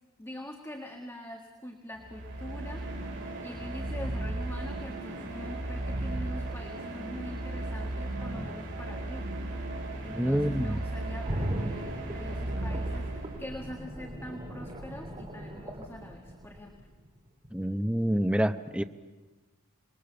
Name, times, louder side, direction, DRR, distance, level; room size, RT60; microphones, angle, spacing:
voice 1, 0.2-2.9 3.1-9.3 10.0-16.8, left 1 dB, 10° left, 1 dB, 1.7 m, -44 dB
sound 1, 2.0-13.7, right 1 dB, 60° right, 5.4 m, -35 dB
voice 2, 10.1-10.8 17.5-18.8, equal, 5° right, 8 dB, 0.8 m, -27 dB
sound 2, 11.2-17.1 17.4-17.5, equal, 30° right, 2.8 m, -38 dB
27.0 x 21.0 x 6.9 m, 1.2 s
head